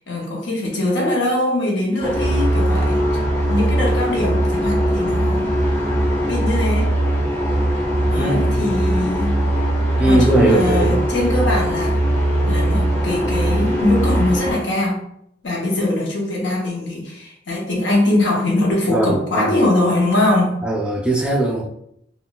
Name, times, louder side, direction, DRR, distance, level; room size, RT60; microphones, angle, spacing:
voice 1, 0.1-3.0 3.5-5.5 6.3-6.9 8.1-9.4 10.0-12.0 12.4-15.0 15.4-20.6, left 1 dB, 70° left, -1 dB, 0.9 m, -21 dB
sound 1, 2.0-14.5, right 1 dB, 10° left, 0.7 m, -20 dB
voice 2, 8.1-8.6 10.0-11.0 18.9-19.6 20.6-21.7, right 1 dB, 5° right, -2 dB, 0.4 m, -19 dB
3.6 x 2.3 x 2.3 m, 0.73 s
head